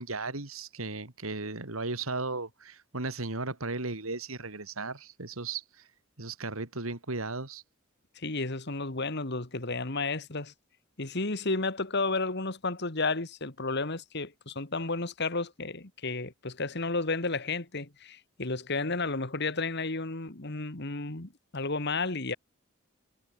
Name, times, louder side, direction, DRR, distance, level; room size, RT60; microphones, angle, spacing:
voice 1, 0.0-5.6 6.2-7.6, right 3 dB, 85° right, 3.0 m, -35 dB
voice 2, 8.2-10.5 11.0-22.4, left 3 dB, 55° left, 2.2 m, -32 dB
head